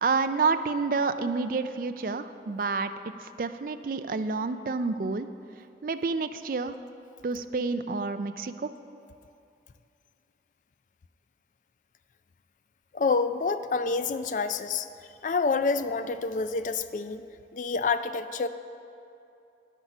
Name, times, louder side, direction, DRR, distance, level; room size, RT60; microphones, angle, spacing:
voice 1, 0.0-2.9 3.2-5.3 5.8-6.7 7.2-8.7, right 4 dB, 50° right, 10 dB, 0.4 m, -29 dB
voice 2, 12.9-14.9 15.2-17.2 17.5-18.5, left 4 dB, 45° left, 11 dB, 0.4 m, -27 dB
9.2 x 8.2 x 6.0 m, 2.6 s
head